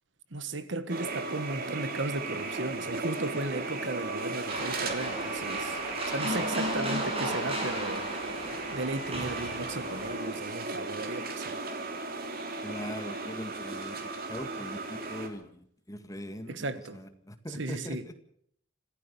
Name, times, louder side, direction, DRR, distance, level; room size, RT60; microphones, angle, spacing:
voice 1, 0.3-5.8 6.1-8.1 8.7-11.6 16.5-17.0 17.5-18.1, right 2 dB, 65° right, 1.5 m, -35 dB
sound 1, 0.9-15.3, right 3 dB, 50° right, 3.1 m, -36 dB
sound 2, 4.5-10.2, right 1 dB, 30° right, 7.2 m, -34 dB
voice 2, 12.6-16.7 16.9-18.1, equal, 15° left, 2.0 m, -41 dB
26.5 x 15.0 x 6.9 m
head